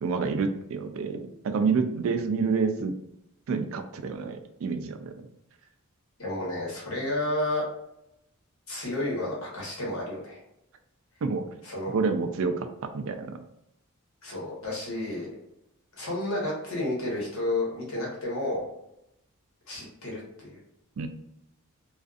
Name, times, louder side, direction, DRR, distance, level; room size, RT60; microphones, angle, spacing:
voice 1, 0.0-2.9 3.5-5.2 11.2-11.4 11.9-13.3 21.0-21.1, right 4 dB, 60° right, 7 dB, 0.3 m, -28 dB
voice 2, 6.2-7.6 8.7-10.4 11.6-11.9 14.2-15.3 16.0-18.6 19.7-20.5, left 1 dB, 65° left, -4 dB, 1.1 m, -31 dB
2.4 x 2.4 x 2.4 m, 0.83 s
head